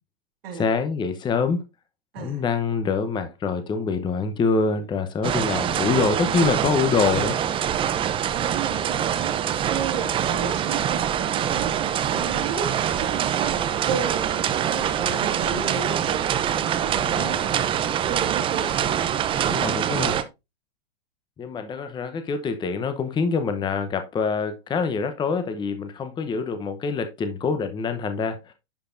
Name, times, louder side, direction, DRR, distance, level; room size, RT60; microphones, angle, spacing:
voice 1, 0.6-1.6 2.2-7.4 17.1-17.4 19.5-20.2 21.4-28.5, left 5 dB, 15° left, 0.8 m, -25 dB
sound 1, 5.2-20.2, right 9 dB, 15° right, 0.5 m, -24 dB
voice 2, 8.3-17.4 18.1-19.8, right 6 dB, 65° right, 2.3 m, -33 dB
10.0 x 5.1 x 2.6 m
hypercardioid pair, 125°, 31 cm